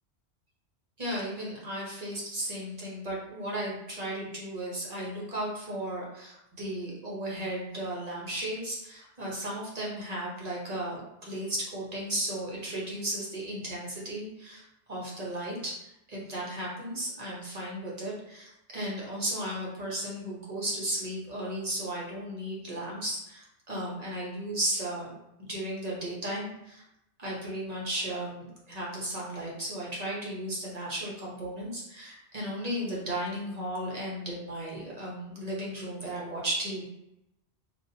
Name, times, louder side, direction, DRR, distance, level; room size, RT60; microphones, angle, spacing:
voice 1, 1.0-14.6 14.9-25.1 25.5-26.8 27.2-36.9, right 1 dB, 40° right, -4 dB, 0.9 m, -35 dB
3.9 x 2.5 x 2.7 m, 0.84 s
omnidirectional pair, 1.2 m